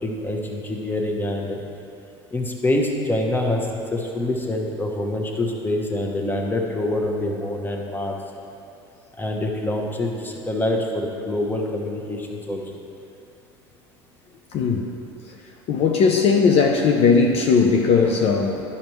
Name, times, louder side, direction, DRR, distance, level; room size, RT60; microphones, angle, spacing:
voice 1, 0.0-1.6 2.3-8.2 9.2-12.6, left 1 dB, 15° left, 1 dB, 1.1 m, -25 dB
voice 2, 14.5-14.9 15.7-18.6, left 5 dB, 50° left, 1 dB, 0.6 m, -18 dB
11.5 x 5.6 x 3.1 m, 2.7 s
hypercardioid pair, 70°, 14 cm